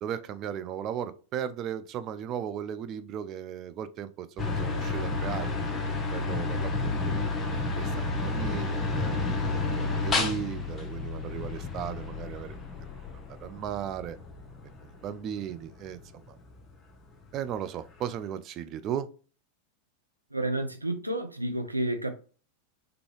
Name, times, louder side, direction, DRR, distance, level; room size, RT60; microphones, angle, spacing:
voice 1, 0.0-5.7 6.1-7.3 7.8-12.6 13.4-14.2 14.8-16.0 16.3-16.4 17.3-19.1, right 9 dB, 35° right, 0.4 m, -36 dB
old fan start up, 4.4-16.7, left 3 dB, 15° left, 0.8 m, -31 dB
sound 1, 6.6-13.5 13.8-14.2 14.6-14.7, right 7 dB, 15° right, 0.8 m, -46 dB
voice 2, 20.3-22.1, right 1 dB, 85° right, 0.6 m, -30 dB
3.8 x 3.4 x 3.2 m
figure-of-eight pair, 90°, 0 cm